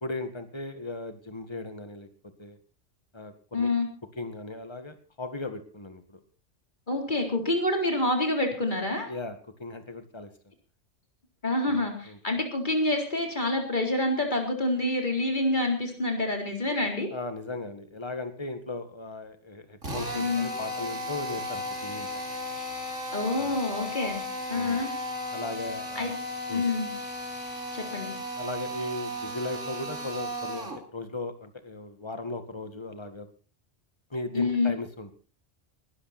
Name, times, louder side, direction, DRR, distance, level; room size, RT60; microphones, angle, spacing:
voice 1, 0.0-2.1 2.4-2.6 3.1-3.7 4.2-6.0 9.1-10.3 11.6-12.2 17.1-22.1 23.3-23.6 24.5-24.8 25.3-26.1 26.5-26.6 28.4-33.3 34.1-35.1, left 2 dB, 20° left, 8 dB, 2.0 m, -37 dB
voice 2, 3.5-3.9 6.9-9.1 11.4-17.1 20.1-20.5 23.1-24.2 24.5-24.9 26.0-26.2 26.5-26.9 27.7-28.1 34.3-34.7, left 2 dB, 40° left, 2 dB, 4.2 m, -27 dB
Drill, 19.8-30.8, left 1 dB, 85° right, 3.4 m, -35 dB
20.0 x 13.0 x 4.4 m, 0.37 s
omnidirectional pair, 1.2 m